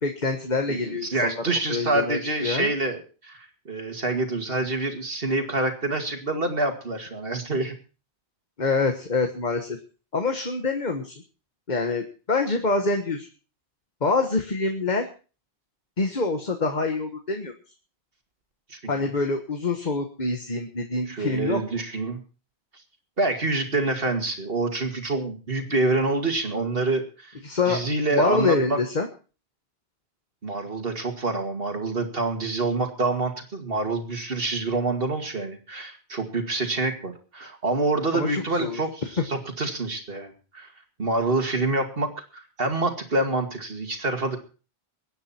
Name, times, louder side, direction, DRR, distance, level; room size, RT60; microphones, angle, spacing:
voice 1, 0.0-1.3 1.7-2.7 8.6-9.8 10.1-11.1 11.7-13.3 14.0-15.1 16.0-17.5 18.9-21.6 25.7-25.8 27.4-27.8 28.1-29.1 38.1-38.8, left 3 dB, 45° left, 5 dB, 1.5 m, -26 dB
voice 2, 0.7-7.8 18.7-19.1 21.1-22.2 23.2-27.4 27.7-28.8 30.4-40.7 41.0-44.4, right 2 dB, 65° right, 5 dB, 2.5 m, -27 dB
23.0 x 9.5 x 4.4 m, 0.36 s
omnidirectional pair, 1.0 m